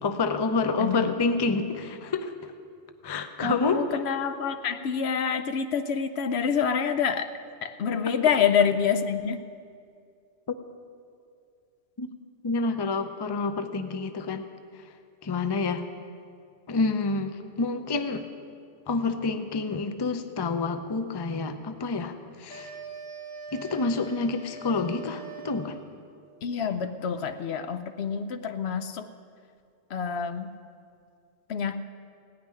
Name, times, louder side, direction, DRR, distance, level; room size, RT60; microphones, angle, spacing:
voice 1, 0.0-2.5 3.0-3.8 12.0-12.1 12.4-14.5 15.2-15.9 16.7-18.2 18.9-22.8 23.5-25.8, left 3 dB, 30° left, 8 dB, 0.5 m, -28 dB
voice 2, 0.8-1.1 3.4-7.3 7.6-9.4 26.4-29.1 29.9-30.5 31.5-31.8, left 7 dB, 70° left, 10 dB, 0.8 m, -27 dB
sound 1, 22.5-26.0, right 3 dB, 5° left, 3.0 m, -42 dB
17.0 x 6.0 x 9.8 m, 2.3 s
omnidirectional pair, 1.2 m